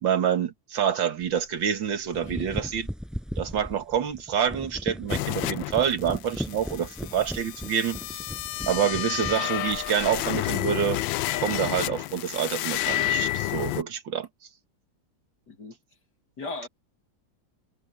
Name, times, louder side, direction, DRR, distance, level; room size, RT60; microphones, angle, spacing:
voice 1, 0.0-2.9 3.4-8.3 8.7-11.0 11.4-14.3, right 8 dB, 75° right, 2.4 m, -27 dB
sound 1, 1.2-1.4 1.9-10.4, equal, ahead, 6.5 m, -37 dB
sound 2, 5.1-13.8, left 15 dB, 85° left, 1.3 m, -30 dB
voice 2, 15.5-15.8 16.4-16.7, left 3 dB, 60° left, 3.2 m, -37 dB
omnidirectional pair, 2.1 m